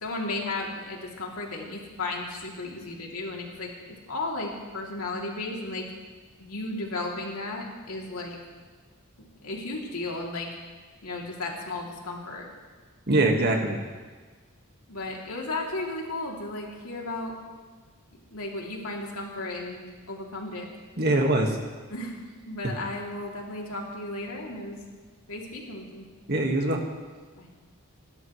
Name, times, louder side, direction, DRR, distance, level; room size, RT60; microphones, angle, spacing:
voice 1, 0.0-5.9 6.4-8.4 9.2-10.5 11.0-12.5 14.9-17.3 18.3-20.7 21.9-22.1 22.5-24.8 25.3-26.0 27.3-27.5, left 2 dB, 75° left, -2 dB, 3.0 m, -34 dB
voice 2, 13.1-13.8 21.0-21.6 26.3-26.8, right 2 dB, 50° right, 2 dB, 1.8 m, -23 dB
29.5 x 12.0 x 3.3 m, 1.4 s
head